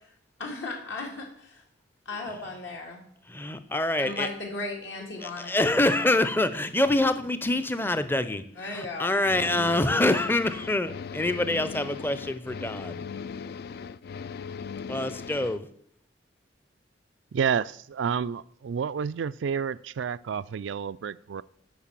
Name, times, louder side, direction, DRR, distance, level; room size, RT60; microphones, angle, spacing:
voice 1, 0.4-1.6 2.1-3.1 4.0-6.1 8.6-9.9, left 3 dB, 75° left, 0 dB, 2.1 m, -37 dB
voice 2, 3.3-4.3 5.2-13.0 14.9-15.7, left 1 dB, 10° left, 12 dB, 0.6 m, -26 dB
sound 1, 9.2-15.6, left 6 dB, 55° left, 0.3 m, -38 dB
voice 3, 17.3-21.4, right 7 dB, 80° right, 18 dB, 0.4 m, -30 dB
8.3 x 5.8 x 7.5 m, 0.65 s
head